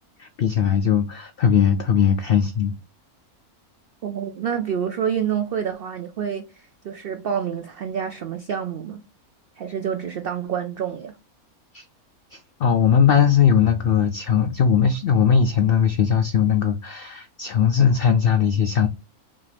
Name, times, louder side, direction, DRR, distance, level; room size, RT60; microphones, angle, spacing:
voice 1, 0.2-2.7 11.7-11.8 12.3-18.9, left 7 dB, 80° left, 0.5 m, -19 dB
voice 2, 4.0-9.0 9.6-11.1, right 8 dB, 85° right, 0.5 m, -28 dB
5.6 x 2.5 x 3.3 m
omnidirectional pair, 1.5 m